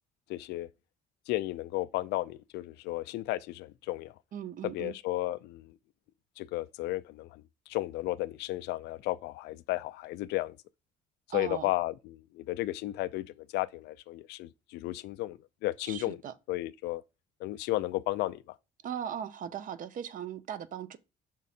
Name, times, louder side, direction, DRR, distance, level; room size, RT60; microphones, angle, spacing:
voice 1, 0.3-0.7 1.3-4.1 4.6-5.7 6.4-7.4 7.7-10.6 11.3-13.3 13.5-16.2 16.5-17.0 17.4-18.4, left 17 dB, 85° left, 0.4 m, -33 dB
voice 2, 4.3-4.9 11.3-11.7 15.8-16.3 18.8-21.0, right 9 dB, 50° right, 0.7 m, -38 dB
6.1 x 3.7 x 4.2 m
cardioid pair, 110°, 17 cm